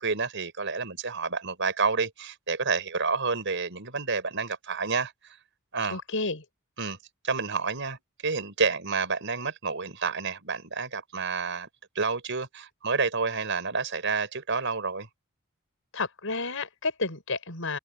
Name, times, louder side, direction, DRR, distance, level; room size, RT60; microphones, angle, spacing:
voice 1, 0.0-5.1 5.7-6.0 6.8-7.0 7.2-11.7 12.0-15.1, right 4 dB, 60° right, 5.5 m, -29 dB
voice 2, 5.9-6.4 15.9-17.8, left 3 dB, 65° left, 6.8 m, -31 dB
head